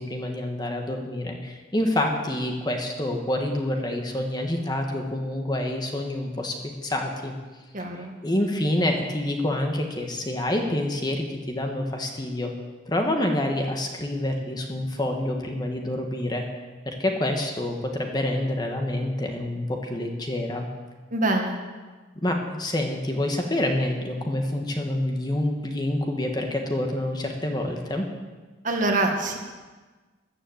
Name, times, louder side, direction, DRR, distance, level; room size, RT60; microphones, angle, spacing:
voice 1, 0.0-6.5 6.8-7.4 7.9-12.5 12.9-16.4 16.8-20.7 22.2-28.1, left 1 dB, 20° left, 2 dB, 1.4 m, -27 dB
voice 2, 7.7-8.1 21.1-21.6 28.6-29.4, right 2 dB, 40° right, 2 dB, 1.8 m, -24 dB
14.0 x 9.9 x 7.8 m, 1.3 s
head